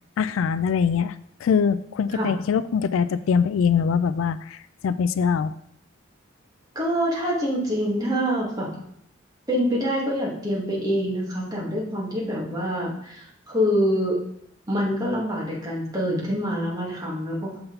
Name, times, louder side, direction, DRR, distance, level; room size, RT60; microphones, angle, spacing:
voice 1, 0.2-1.2 1.4-5.6, left 6 dB, 75° left, 14 dB, 0.3 m, -23 dB
voice 2, 6.8-8.7 9.5-14.2 14.7-17.6, equal, 20° right, -4 dB, 1.9 m, -25 dB
6.8 x 5.8 x 3.9 m, 0.70 s
head